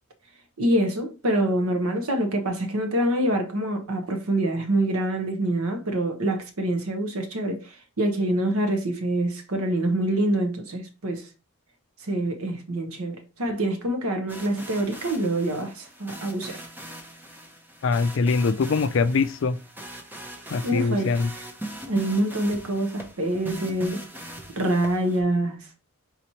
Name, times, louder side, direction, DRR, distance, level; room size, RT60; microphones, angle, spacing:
voice 1, 0.6-11.3 12.0-16.6 20.6-21.4 21.9-24.1 24.6-25.6, right 1 dB, 80° right, 1.0 m, -26 dB
sound 1, 14.3-25.2, right 1 dB, 10° right, 0.5 m, -40 dB
voice 2, 17.8-19.6 20.5-21.3, left 4 dB, 60° left, 0.4 m, -23 dB
4.2 x 3.0 x 4.2 m
head